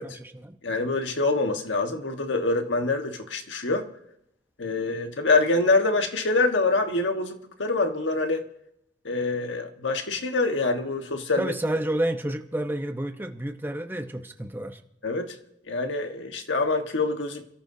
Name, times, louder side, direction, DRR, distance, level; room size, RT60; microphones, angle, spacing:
voice 1, 0.0-0.6 11.4-14.8, right 1 dB, 10° right, 0.9 m, -30 dB
voice 2, 0.6-3.9 4.6-8.4 9.0-11.5 15.0-15.3 15.7-17.5, left 3 dB, 75° left, 1.4 m, -25 dB
28.5 x 13.5 x 2.8 m
head